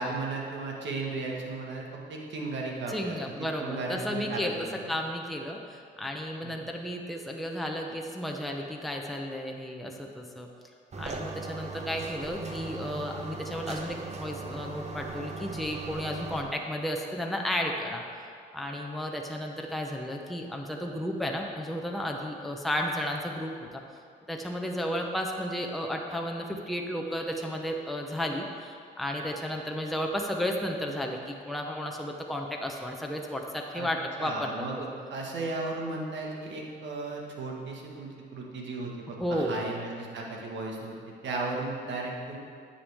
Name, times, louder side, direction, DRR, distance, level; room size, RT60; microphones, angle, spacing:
voice 1, 0.0-4.9 6.4-6.5 33.7-33.9 34.2-42.4, right 3 dB, 65° right, -1 dB, 1.6 m, -35 dB
voice 2, 2.9-4.5 4.9-10.5 11.0-23.8 24.3-34.7 39.2-39.6, equal, ahead, 1 dB, 0.8 m, -33 dB
sound 1, 10.9-16.4, right 3 dB, 35° right, 0.9 m, -38 dB
10.0 x 7.2 x 3.5 m, 2.3 s
cardioid pair, 90°, 20 cm